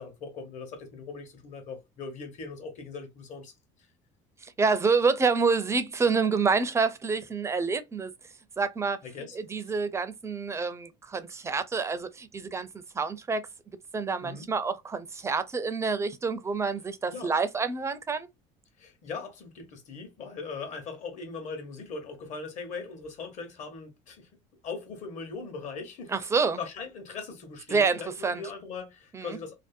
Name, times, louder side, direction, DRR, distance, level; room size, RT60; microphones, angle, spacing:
voice 1, 0.0-3.5 9.0-9.4 9.7-9.8 14.2-14.5 17.1-17.3 18.8-24.3 24.6-26.2 26.6-29.5, left 4 dB, 50° left, 1.0 m, -40 dB
voice 2, 4.6-8.1 8.6-9.0 9.3-12.7 12.9-13.4 13.9-18.3 26.1-26.6 27.7-28.4 29.1-29.4, right 4 dB, 20° right, 0.4 m, -27 dB
2.6 x 2.1 x 2.4 m
supercardioid pair, 110°, 16 cm